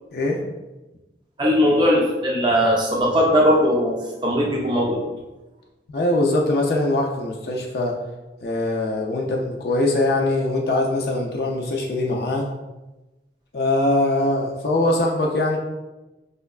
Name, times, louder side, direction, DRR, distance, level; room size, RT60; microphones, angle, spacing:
voice 1, 0.1-0.4 5.9-8.0 8.4-12.5 13.5-15.6, left 2 dB, 60° left, 0 dB, 0.4 m, -22 dB
voice 2, 1.4-4.0 4.2-5.0, equal, 25° right, -2 dB, 0.5 m, -19 dB
5.0 x 2.2 x 2.3 m, 1.1 s
head